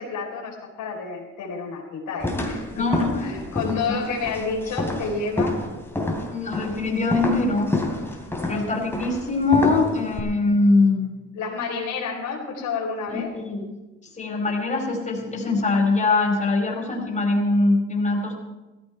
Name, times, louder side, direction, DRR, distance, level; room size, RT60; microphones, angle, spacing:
voice 1, 0.0-2.9 3.2-5.6 8.4-8.7 11.3-13.3, left 4 dB, 85° left, -1 dB, 4.2 m, -30 dB
sound 1, 2.2-10.2, left 1 dB, 10° left, 3.3 m, -28 dB
voice 2, 2.7-3.2 3.6-4.0 6.3-7.7 8.5-11.2 13.1-13.8 14.2-18.4, left 3 dB, 25° left, 0 dB, 4.7 m, -22 dB
16.0 x 14.5 x 4.6 m, 1.1 s
cardioid pair, 90°, 30 cm